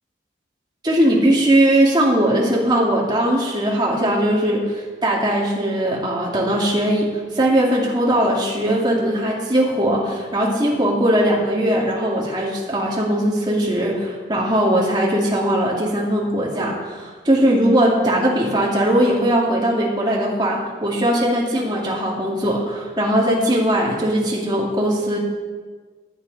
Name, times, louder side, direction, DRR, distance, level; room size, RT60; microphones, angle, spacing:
voice 1, 0.8-25.2, right 1 dB, 25° right, -3 dB, 2.3 m, -19 dB
14.5 x 9.8 x 4.1 m, 1.5 s
head